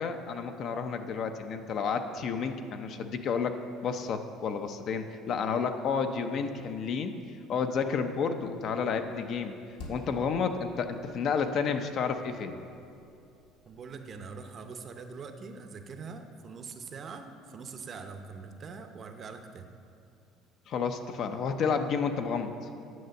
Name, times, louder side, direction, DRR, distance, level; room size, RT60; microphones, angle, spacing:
voice 1, 0.0-7.1 7.5-9.6 9.9-12.6 20.7-22.5, left 6 dB, 45° left, 7 dB, 0.6 m, -31 dB
sound 1, 8.6-14.4, left 2 dB, 80° left, 1.7 m, -52 dB
voice 2, 13.6-19.7, right 5 dB, 30° right, 6 dB, 0.7 m, -43 dB
9.4 x 6.8 x 7.7 m, 2.6 s
cardioid pair, 160°, 0 cm